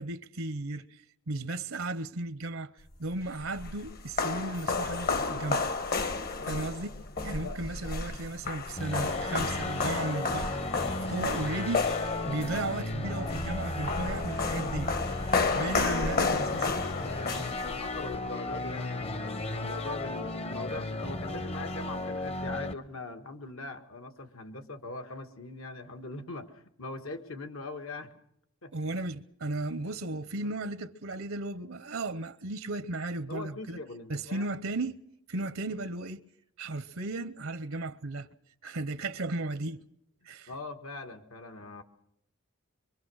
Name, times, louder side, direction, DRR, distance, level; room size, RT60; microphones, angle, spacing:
voice 1, 0.0-2.7 3.0-5.6 6.4-7.0 7.2-10.5 11.0-11.8 12.2-15.1 15.5-16.7 28.7-33.8 34.1-35.0 35.3-36.2 36.6-38.3 38.6-39.8 40.2-40.5, right 2 dB, 75° right, 0.8 m, -35 dB
sound 1, 3.1-18.2, left 4 dB, 50° left, 1.2 m, -32 dB
voice 2, 6.3-6.7 7.4-7.6 17.0-28.1 28.6-28.8 30.4-30.5 33.3-34.5 40.5-41.8, left 3 dB, 75° left, 1.8 m, -41 dB
sound 2, 8.8-22.7, left 2 dB, 30° left, 0.8 m, -35 dB
24.0 x 24.0 x 6.3 m
head